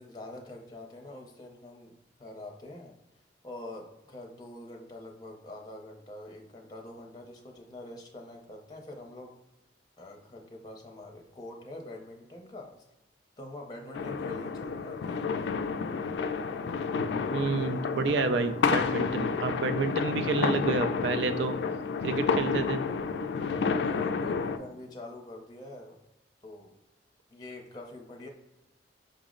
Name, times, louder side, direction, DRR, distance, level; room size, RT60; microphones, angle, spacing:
voice 1, 0.0-2.9 3.4-9.3 10.0-12.7 13.4-15.3 23.6-26.0 26.4-26.7 27.3-28.3, left 1 dB, 25° left, 1 dB, 0.6 m, -45 dB
sound 1, 13.9-24.6, left 5 dB, 70° left, 0.3 m, -30 dB
voice 2, 17.3-21.5 22.0-22.8, right 3 dB, 75° right, 9 dB, 0.4 m, -29 dB
5.2 x 2.0 x 3.6 m, 0.94 s
head